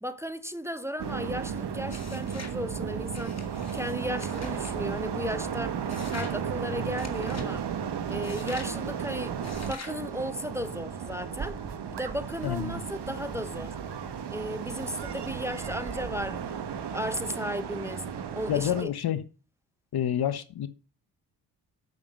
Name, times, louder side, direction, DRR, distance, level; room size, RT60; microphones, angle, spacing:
voice 1, 0.0-3.4 3.7-5.8 6.1-7.7 8.1-11.6 11.9-13.8 14.3-18.1 18.3-18.9, equal, 5° right, 1.0 m, -35 dB
sound 1, 1.0-18.8, right 7 dB, 55° right, 1.7 m, -34 dB
sound 2, 1.9-2.6 3.1-4.8 5.9-6.4 7.0-7.5 8.2-8.7 9.4-10.0, left 4 dB, 35° left, 2.4 m, -45 dB
voice 2, 12.4-12.8 18.5-19.2 19.9-20.7, left 10 dB, 50° left, 1.1 m, -28 dB
8.5 x 6.7 x 5.6 m
hypercardioid pair, 45°, 47 cm